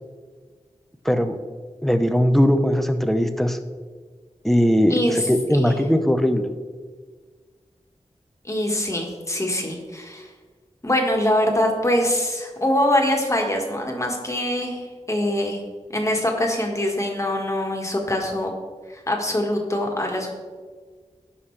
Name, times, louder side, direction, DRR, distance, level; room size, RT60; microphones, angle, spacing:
voice 1, 1.0-1.4 1.8-3.6 4.4-6.5, equal, ahead, 8 dB, 0.7 m, -19 dB
voice 2, 4.9-5.3 5.5-5.6 8.4-10.3 10.8-15.6 15.9-18.5 18.9-20.4, left 1 dB, 25° left, 1 dB, 1.7 m, -23 dB
16.0 x 5.7 x 3.3 m, 1.5 s
wide cardioid pair, 75°, 12 cm